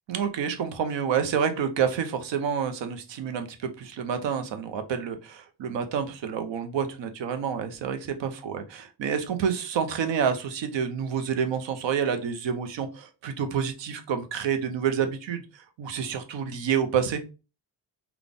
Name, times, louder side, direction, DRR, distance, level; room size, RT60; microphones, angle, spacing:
voice 1, 0.1-17.2, right 7 dB, 85° right, 7 dB, 0.7 m, -28 dB
3.9 x 2.3 x 3.4 m, 0.31 s
wide cardioid pair, 175°, 43 cm